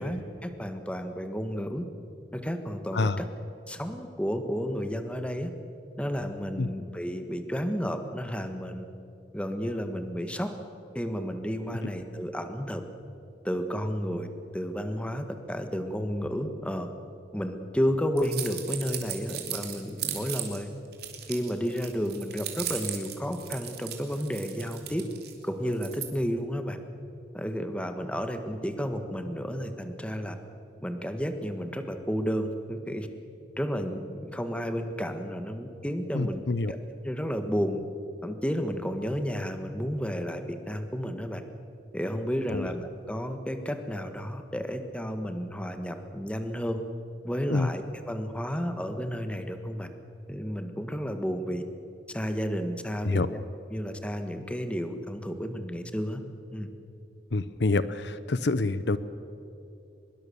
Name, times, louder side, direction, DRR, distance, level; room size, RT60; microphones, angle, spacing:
voice 1, 0.0-1.8 2.3-3.3 3.7-5.5 6.0-8.8 9.3-10.5 10.9-12.8 13.4-14.3 14.5-16.9 17.3-20.7 21.3-25.0 25.4-26.8 27.3-30.3 30.8-33.1 33.6-36.4 36.7-36.8 37.0-37.8 38.2-41.4 41.9-46.8 47.2-49.9 50.3-51.6 52.1-53.4 53.7-56.2 56.5-56.7, equal, 5° left, 7 dB, 1.5 m, -32 dB
sound 1, 18.2-20.6 20.9-25.3 25.7-26.1, right 11 dB, 60° right, 3.2 m, -36 dB
voice 2, 36.1-36.7 42.5-42.7 47.5-47.7 53.0-53.3 57.3-59.0, left 3 dB, 70° left, 14 dB, 0.8 m, -27 dB
23.5 x 22.0 x 7.1 m, 2.7 s
head